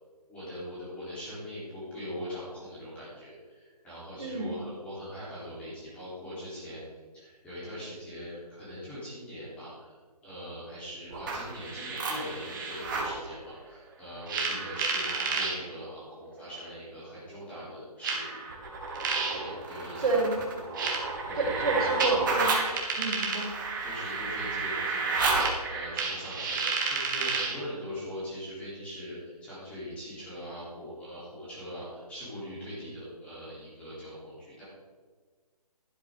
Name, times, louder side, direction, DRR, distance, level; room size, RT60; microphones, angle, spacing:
voice 1, 0.3-6.8 7.1-9.9 10.2-18.4 19.3-20.1 21.2-21.7 23.8-25.3 25.7-34.6, equal, 5° left, -10 dB, 3.4 m, -41 dB
voice 2, 4.2-4.6 20.0-20.4 21.4-22.6 23.0-23.5, right 3 dB, 60° right, -2 dB, 3.8 m, -29 dB
sound 1, 11.1-13.2 14.3-15.6 16.6-16.7 18.0-27.6, right 4 dB, 30° right, 2.2 m, -31 dB
12.0 x 12.0 x 3.7 m, 1.5 s
hypercardioid pair, 165°, 20 cm